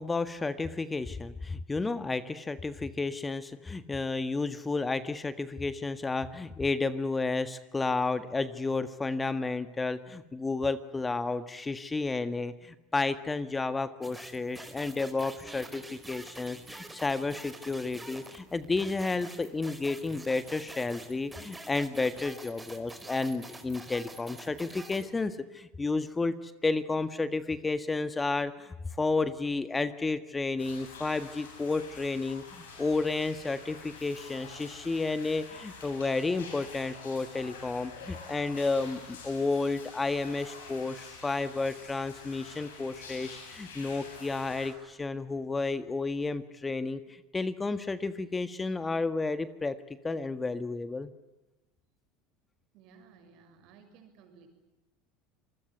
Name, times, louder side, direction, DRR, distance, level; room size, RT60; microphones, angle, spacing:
voice 1, 0.0-49.8 50.0-51.1, left 3 dB, 20° left, 13 dB, 1.6 m, -32 dB
sound 1, 14.0-25.1, right 2 dB, 10° right, 4.5 m, -46 dB
sound 2, 30.6-44.7, left 4 dB, 85° left, 7.8 m, -47 dB
voice 2, 52.7-54.5, right 5 dB, 60° right, 7 dB, 6.9 m, -56 dB
27.0 x 21.0 x 9.5 m, 1.0 s
hypercardioid pair, 85°, 0 cm